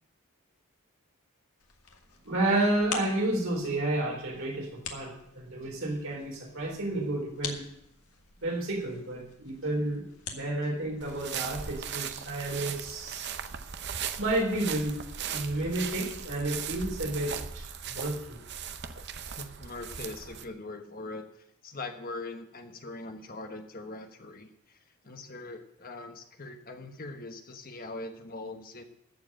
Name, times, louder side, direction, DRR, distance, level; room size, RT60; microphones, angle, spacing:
sound 1, 1.6-11.8, left 6 dB, 85° left, 1.7 m, -45 dB
voice 1, 2.3-7.7 8.4-13.3 14.2-15.0 15.3-18.4, right 1 dB, 65° right, -1 dB, 3.8 m, -31 dB
sound 2, 11.0-20.4, right 7 dB, 50° right, 0.7 m, -38 dB
voice 2, 19.4-21.2 21.6-24.8 25.0-28.8, left 2 dB, 40° left, 5 dB, 1.2 m, -41 dB
14.5 x 4.8 x 8.7 m, 0.77 s
head